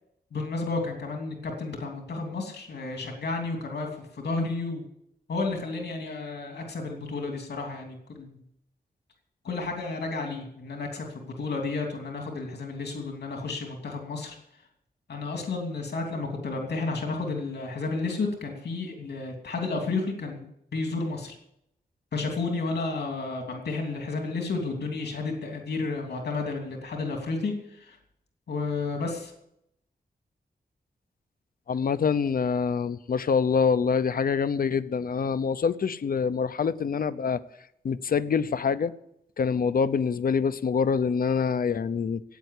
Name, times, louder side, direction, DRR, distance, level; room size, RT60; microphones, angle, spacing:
voice 1, 0.3-4.8 5.3-8.4 9.4-14.4 15.1-20.5 20.7-21.3 22.1-28.0 28.5-29.3, left 3 dB, 85° left, 2 dB, 2.9 m, -32 dB
voice 2, 31.7-37.4 37.8-38.9 39.4-42.2, left 6 dB, 60° left, 14 dB, 0.8 m, -25 dB
15.5 x 9.2 x 8.4 m, 0.78 s
wide cardioid pair, 115°, 17 cm